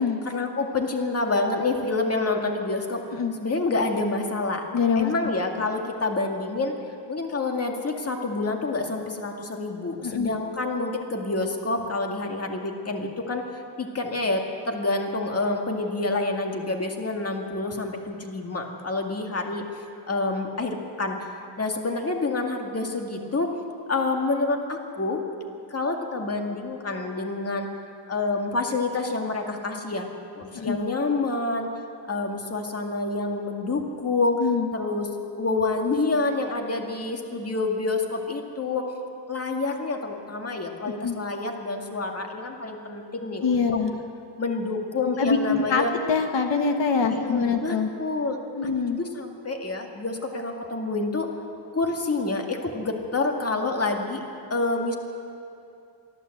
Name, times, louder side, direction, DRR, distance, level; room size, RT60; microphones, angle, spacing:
voice 1, 0.2-3.0 3.4-4.6 5.0-6.7 7.1-19.7 20.1-21.3 21.6-23.5 23.9-25.2 25.7-27.7 28.1-30.1 30.3-31.7 32.1-34.4 34.7-35.1 35.4-38.9 39.3-43.8 44.4-45.9 47.1-51.3 51.7-54.2 54.5-55.0, left 3 dB, 35° left, 2 dB, 2.1 m, -28 dB
voice 2, 4.7-5.1 10.0-10.3 30.5-30.8 34.4-34.7 41.0-41.2 43.4-43.9 45.1-47.9 48.6-49.0, left 5 dB, 85° left, 5 dB, 1.5 m, -24 dB
23.5 x 14.5 x 7.9 m, 2.6 s
wide cardioid pair, 135°, 43 cm